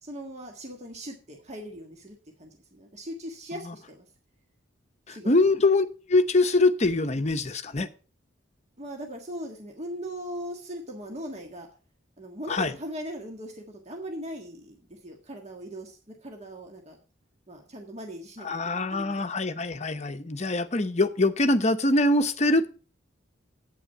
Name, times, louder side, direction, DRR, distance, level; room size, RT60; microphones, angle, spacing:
voice 1, 0.0-4.1 5.1-5.5 8.8-11.7 12.2-17.0 17.5-19.3, equal, 35° right, 1.6 m, -39 dB
voice 2, 5.1-7.9 12.5-12.7 18.4-22.7, left 2 dB, 35° left, 0.8 m, -24 dB
8.7 x 8.6 x 5.5 m
head